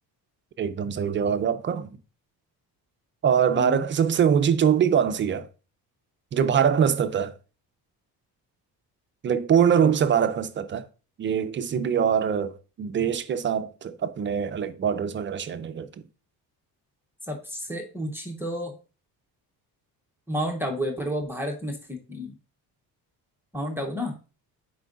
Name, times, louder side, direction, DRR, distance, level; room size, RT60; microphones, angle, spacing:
voice 1, 0.6-1.9 3.2-5.5 6.3-7.3 9.2-10.8 11.2-12.5 12.8-15.9, right 8 dB, 35° right, 0.4 m, -23 dB
voice 2, 3.5-3.9 17.3-18.7 20.3-22.3 23.5-24.1, equal, 5° right, 0.7 m, -31 dB
10.0 x 4.5 x 2.4 m
cardioid pair, 160°, 37 cm